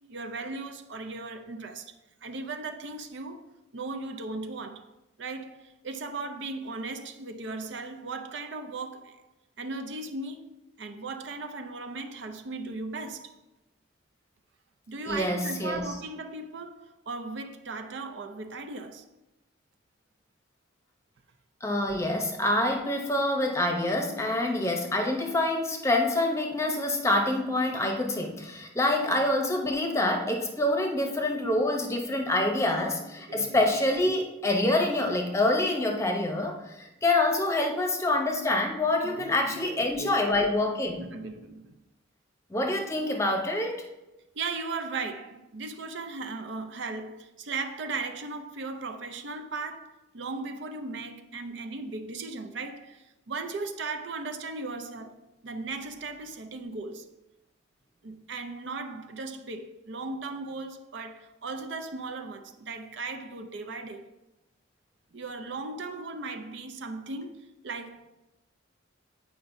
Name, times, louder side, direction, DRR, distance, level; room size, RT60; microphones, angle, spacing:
voice 1, 0.0-1.9 2.2-3.4 3.7-4.9 5.2-9.2 9.6-10.5 10.8-13.3 14.9-19.1 22.0-22.1 31.3-31.5 33.3-33.6 39.0-40.3 41.0-41.7 44.3-57.1 58.0-64.1 65.1-68.1, right 3 dB, 60° right, 0.5 m, -37 dB
voice 2, 15.1-15.9 21.6-41.0 42.5-43.9, left 1 dB, 15° left, 0.8 m, -26 dB
8.6 x 5.0 x 2.6 m
head